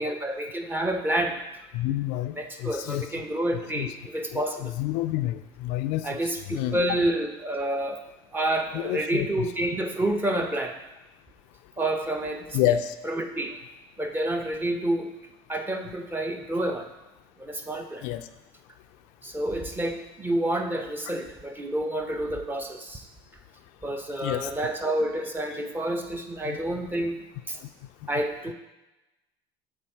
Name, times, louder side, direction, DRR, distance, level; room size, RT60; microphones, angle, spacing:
voice 1, 0.0-1.4 2.4-4.7 6.0-8.1 8.3-10.8 11.8-12.6 13.0-13.6 14.0-15.1 15.5-16.9 17.4-18.0 19.2-23.0 23.8-27.6 28.1-28.5, right 1 dB, 15° right, 5 dB, 0.8 m, -29 dB
voice 2, 1.7-3.1 3.7-3.9 4.3-6.2 6.5-6.9 8.7-9.5 12.5-12.9 18.0-18.3 24.2-24.5 26.4-26.6, left 13 dB, 70° left, 10 dB, 0.4 m, -29 dB
7.3 x 3.6 x 4.4 m, 1.0 s
supercardioid pair, 95°, 13 cm